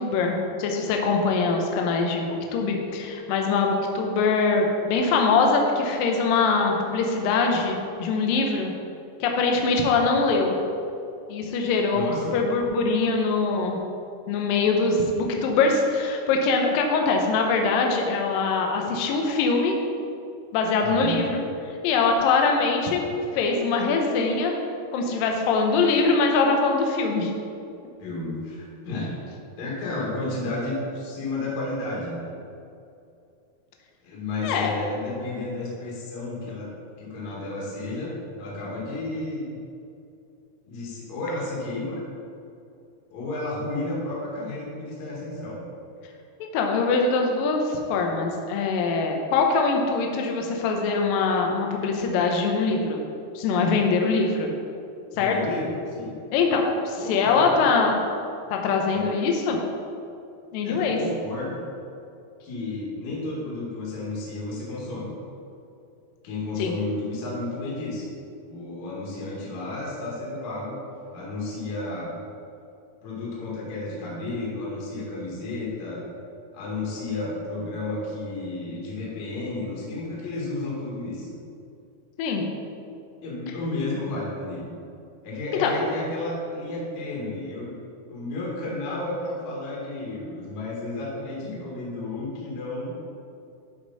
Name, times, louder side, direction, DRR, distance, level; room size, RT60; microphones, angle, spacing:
voice 1, 0.0-8.7 9.2-10.6 11.3-13.8 14.3-19.7 20.5-21.4 21.8-23.0 23.3-24.5 24.9-27.3 34.4-34.7 46.4-53.0 53.4-54.5 55.2-55.4 56.3-58.0 58.5-59.6 60.5-61.0 66.6-66.7 82.2-82.4 85.6-85.7, left 4 dB, 75° left, 2 dB, 2.1 m, -23 dB
voice 2, 11.9-12.4 20.8-21.3 28.0-29.1 29.6-32.2 34.0-36.7 37.0-39.6 40.6-42.0 43.1-45.6 55.1-56.1 57.0-57.6 58.9-59.1 60.6-61.6 62.4-65.1 66.2-68.1 68.5-70.8 71.1-72.1 73.0-76.0 76.5-81.4 83.2-84.8 85.2-87.7 88.1-92.9, left 2 dB, 50° left, -5 dB, 2.7 m, -32 dB
12.0 x 5.2 x 4.1 m, 2.6 s
omnidirectional pair, 5.2 m